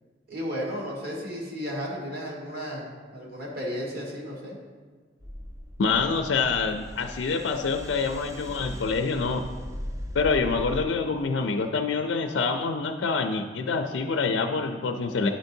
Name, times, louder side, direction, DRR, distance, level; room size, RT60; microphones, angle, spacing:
voice 1, 0.3-2.8 3.1-4.5, equal, 55° right, -4 dB, 1.5 m, -33 dB
sound 1, 5.2-10.9, equal, 15° right, 0.5 m, -39 dB
voice 2, 5.8-9.4 10.1-15.3, left 4 dB, 90° left, 5 dB, 0.4 m, -26 dB
10.0 x 4.5 x 2.7 m, 1.5 s
head